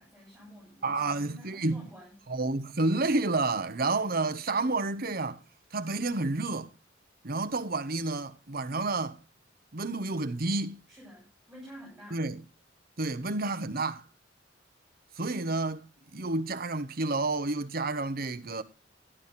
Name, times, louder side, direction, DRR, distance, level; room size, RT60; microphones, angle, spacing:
voice 1, 0.0-2.1 10.9-12.2, equal, ahead, 7.3 m, -50 dB
voice 2, 0.8-1.9 2.3-5.4 5.7-6.7 7.2-9.2 9.7-10.8 12.1-12.4 13.0-14.0 15.2-15.9 16.1-18.6, right 3 dB, 50° right, 1.1 m, -30 dB
12.0 x 11.5 x 4.2 m
head